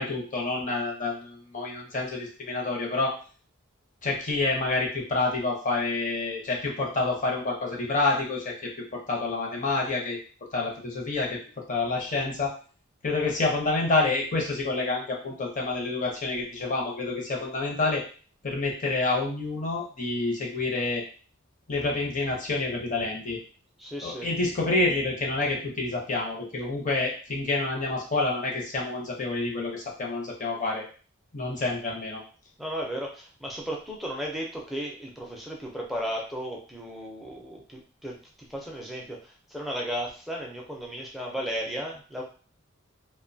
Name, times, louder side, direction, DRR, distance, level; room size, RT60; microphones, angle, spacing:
voice 1, 0.0-3.1 4.0-8.5 8.9-10.2 10.5-11.4 11.7-12.5 13.0-18.0 18.4-21.0 21.7-23.4 24.0-30.9 31.3-32.2, left 3 dB, 35° left, -1 dB, 0.7 m, -28 dB
voice 2, 23.8-24.3 32.6-38.2 38.5-42.2, equal, ahead, -2 dB, 0.4 m, -35 dB
2.6 x 2.2 x 2.6 m, 0.39 s
head